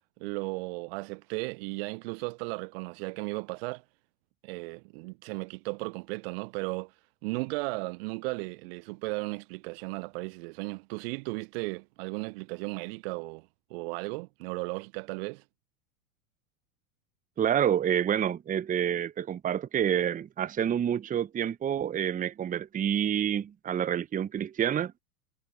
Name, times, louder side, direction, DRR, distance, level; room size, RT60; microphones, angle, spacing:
voice 1, 0.2-3.8 4.4-15.4, right 28 dB, 45° right, 0.7 m, -35 dB
voice 2, 17.4-25.0, right 9 dB, 20° right, 1.0 m, -28 dB
figure-of-eight pair, 85°, 43 cm